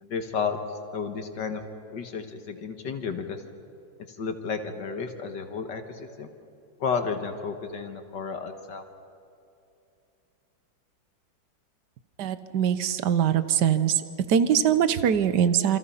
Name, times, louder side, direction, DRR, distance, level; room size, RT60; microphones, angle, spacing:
voice 1, 0.0-0.6 0.9-1.6 1.9-3.4 4.1-6.3 6.8-8.8, left 5 dB, 75° left, 6 dB, 2.0 m, -32 dB
voice 2, 12.2-14.0 14.3-15.8, right 8 dB, 70° right, 12 dB, 1.5 m, -22 dB
28.0 x 26.5 x 5.7 m, 2.6 s
omnidirectional pair, 1.9 m